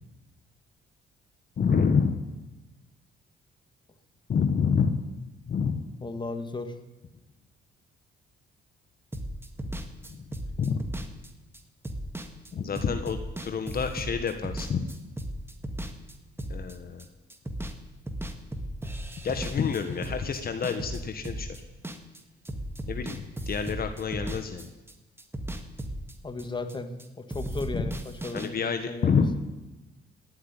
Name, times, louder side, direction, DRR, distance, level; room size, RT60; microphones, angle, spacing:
voice 1, 1.6-2.2 4.3-5.0 5.5-5.8 10.1-10.2 10.6-10.8 12.5-14.9 16.5-17.0 19.2-21.5 22.9-24.7 27.7-27.8 28.3-29.3, left 6 dB, 50° left, 7 dB, 1.3 m, -28 dB
voice 2, 6.0-6.8 26.2-26.9 27.2-29.2, left 2 dB, 25° left, 8 dB, 1.7 m, -35 dB
sound 1, 9.1-17.0 17.3-17.8 18.1-22.2 22.4-24.9 25.2-27.0 27.3-28.5, right 1 dB, 10° right, 1.8 m, -36 dB
18.5 x 7.9 x 9.8 m, 1.1 s
cardioid pair, 90°, 20 cm